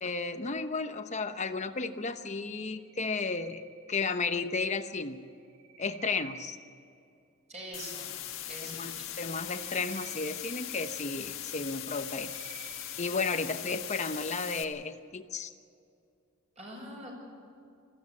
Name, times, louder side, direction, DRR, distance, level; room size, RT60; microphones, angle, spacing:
voice 1, 0.0-3.6 3.9-5.2 5.8-6.6 8.6-8.9 9.2-12.3 13.0-15.5, left 4 dB, 30° left, 8 dB, 0.9 m, -33 dB
sound 1, 2.7-4.3 5.3-7.1 9.1-11.2 11.7-13.2, right 8 dB, 65° right, 4.9 m, -52 dB
voice 2, 7.5-8.2 8.4-9.0 16.5-17.2, right 1 dB, 30° right, -1 dB, 6.8 m, -44 dB
sound 2, 7.7-14.6, left 11 dB, 60° left, 1.7 m, -40 dB
21.5 x 15.5 x 8.4 m, 2.4 s
head